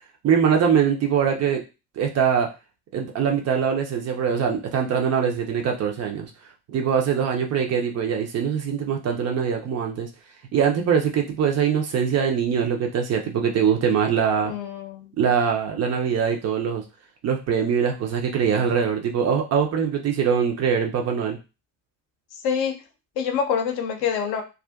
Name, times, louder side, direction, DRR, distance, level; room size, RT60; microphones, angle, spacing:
voice 1, 0.2-1.6 2.0-2.5 2.9-6.3 6.7-10.1 10.5-14.5 15.2-16.8 17.2-21.4, right 7 dB, 35° right, 2 dB, 0.5 m, -22 dB
voice 2, 14.4-15.1 22.4-22.8 23.2-24.4, left 7 dB, 50° left, 5 dB, 0.6 m, -26 dB
2.4 x 2.4 x 2.3 m, 0.29 s
figure-of-eight pair, 45°, 48 cm